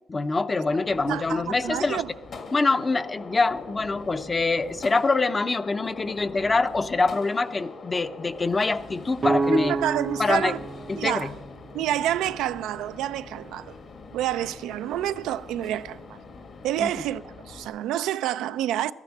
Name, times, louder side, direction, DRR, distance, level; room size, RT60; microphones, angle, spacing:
voice 1, 0.1-2.0 2.5-9.8 10.2-10.5 10.9-11.3 16.8-16.9, left 3 dB, 25° left, 0.6 m, -25 dB
Gunshot gunfire, 0.6-17.7, left 3 dB, 55° left, 1.5 m, -43 dB
voice 2, 1.1-2.1 9.5-10.6 11.0-11.3 11.7-13.7 14.1-16.2 16.6-18.9, right 12 dB, 90° right, 0.4 m, -28 dB
sound 1, 9.2-13.0, right 3 dB, 35° right, 0.5 m, -30 dB
12.5 x 9.7 x 7.2 m
cardioid pair, 90°, 0 cm